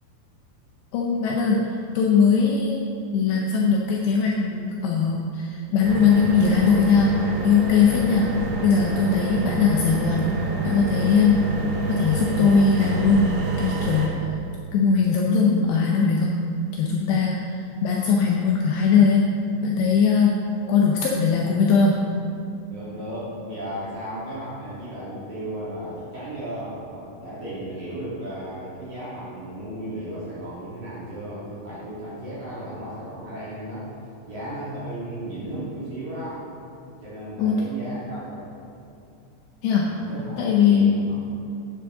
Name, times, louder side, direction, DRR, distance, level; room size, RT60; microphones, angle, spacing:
voice 1, 0.9-1.6 2.0-2.8 3.1-10.3 10.6-11.5 11.9-14.1 14.7-16.4 16.7-19.2 19.6-20.4 20.7-22.0 37.4-37.6 39.6-39.9 40.4-41.0, left 5 dB, 80° left, -2 dB, 2.5 m, -20 dB
sound 1, 5.8-14.1, right 3 dB, 80° right, 3.7 m, -28 dB
voice 2, 22.7-33.9 34.3-36.4 37.0-38.5 40.1-41.1, right 1 dB, 50° right, -10 dB, 2.9 m, -35 dB
9.2 x 8.2 x 3.7 m, 2.7 s
omnidirectional pair, 5.5 m